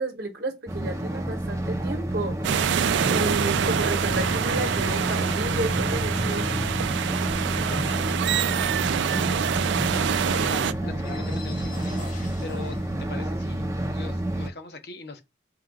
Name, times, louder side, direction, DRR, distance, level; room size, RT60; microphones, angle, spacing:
voice 1, 0.0-2.4 3.0-6.5, right 1 dB, 55° right, 0.9 m, -31 dB
sound 1, 0.7-14.5, right 1 dB, 15° right, 0.5 m, -29 dB
sound 2, 2.4-10.7, right 8 dB, 80° right, 0.3 m, -26 dB
sound 3, 2.8-13.3, left 1 dB, 45° left, 1.2 m, -38 dB
voice 2, 6.1-6.7 7.6-10.0 10.4-15.2, left 3 dB, 60° left, 0.7 m, -42 dB
3.8 x 2.3 x 4.5 m
head